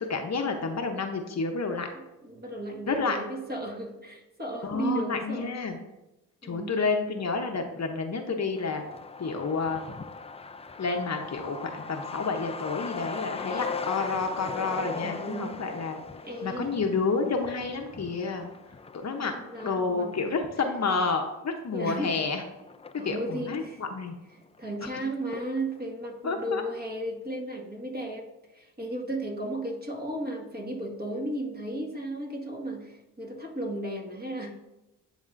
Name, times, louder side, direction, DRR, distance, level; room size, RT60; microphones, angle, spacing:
voice 1, 0.1-1.9 2.9-3.2 4.6-5.8 6.4-8.8 9.2-9.9 10.8-16.0 16.4-18.5 18.9-19.3 19.6-22.4 23.0-24.1 24.8-24.9 26.2-26.6, left 4 dB, 45° left, 3 dB, 0.9 m, -29 dB
voice 2, 2.2-5.5 6.4-6.8 14.9-15.6 16.2-16.7 19.2-20.3 21.7-22.2 23.0-23.8 24.3-34.5, right 1 dB, 25° right, -1 dB, 1.8 m, -35 dB
Truck, 8.6-23.7 24.1-24.2 24.4-25.3 25.6-25.7 26.0-26.4, left 4 dB, 20° left, 0.3 m, -40 dB
11.0 x 3.6 x 2.6 m, 0.96 s
cardioid pair, 60°, 36 cm